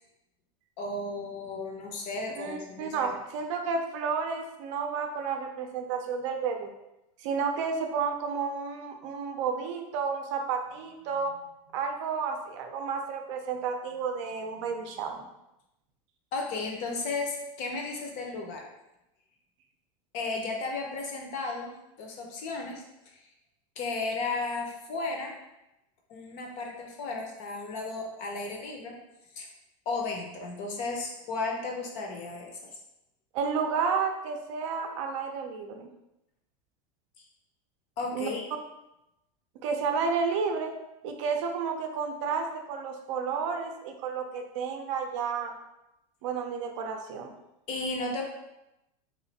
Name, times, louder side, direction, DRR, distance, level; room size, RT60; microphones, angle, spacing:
voice 1, 0.8-3.1 16.3-18.7 20.1-22.8 23.8-25.3 26.1-29.0 29.4-29.5 29.9-32.7 38.0-38.5 47.7-48.2, left 3 dB, 40° left, 1 dB, 0.7 m, -34 dB
voice 2, 2.4-6.7 7.2-11.3 11.7-15.2 33.3-35.9 38.1-38.3 39.6-40.7 41.0-45.5 46.2-47.3, right 5 dB, 55° right, 4 dB, 0.5 m, -31 dB
3.1 x 2.5 x 4.0 m, 0.90 s
supercardioid pair, 160°, 18 cm